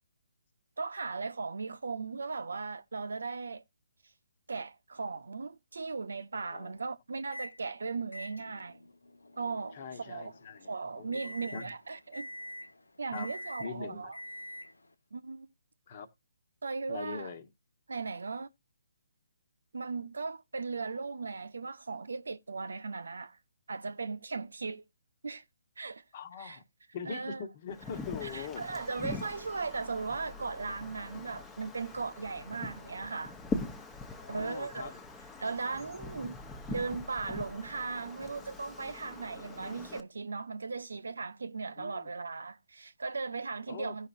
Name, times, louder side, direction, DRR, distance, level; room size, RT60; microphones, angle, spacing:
voice 1, 0.8-3.6 4.5-8.9 9.4-10.3 10.7-12.3 13.0-14.2 15.1-15.5 16.6-17.3 17.9-18.5 19.7-23.4 23.7-24.8 25.2-25.4 25.8-26.0 26.4-26.6 27.1-27.4 28.2-33.4 34.3-34.9 35.4-36.4 36.7-44.1, right 4 dB, 75° right, 0.8 m, -37 dB
voice 2, 6.4-6.7 9.7-11.7 13.1-13.3 13.6-14.1 15.9-16.1 16.9-17.4 26.1-26.6 26.9-28.6 34.1-35.0 41.8-42.1 43.7-43.9, left 6 dB, 40° left, 1.3 m, -42 dB
Microwave oven, 7.3-7.6 8.1-14.9, left 1 dB, 85° left, 0.8 m, -46 dB
Wind, 27.7-40.0, left 3 dB, 10° left, 1.0 m, -43 dB
16.5 x 5.7 x 2.6 m
figure-of-eight pair, 140°, 0 cm